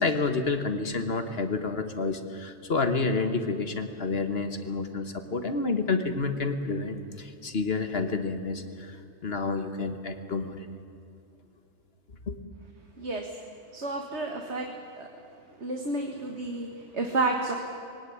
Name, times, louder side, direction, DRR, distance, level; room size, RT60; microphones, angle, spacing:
voice 1, 0.0-9.0 9.2-10.7 12.3-12.4, left 3 dB, 50° left, 8 dB, 1.5 m, -29 dB
voice 2, 13.0-13.3 13.7-14.7 15.0-15.1 15.6-17.6, right 3 dB, 60° right, 2 dB, 1.9 m, -30 dB
21.0 x 18.0 x 9.9 m, 2.7 s
omnidirectional pair, 1.3 m